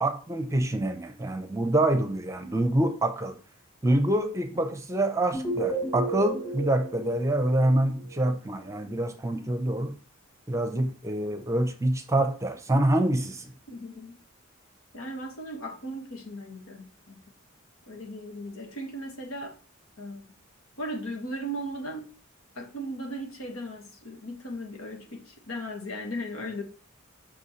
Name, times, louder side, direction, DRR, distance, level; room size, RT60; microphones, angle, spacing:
voice 1, 0.0-3.4 3.8-9.9 10.5-13.5, right 1 dB, 15° right, 0.7 m, -26 dB
sound 1, 5.3-8.3, right 3 dB, 15° left, 4.0 m, -33 dB
voice 2, 13.7-14.1 14.9-17.2 17.9-19.5 20.0-20.2 20.8-22.1 22.6-26.6, equal, 85° left, 1.8 m, -37 dB
8.4 x 6.0 x 3.2 m
head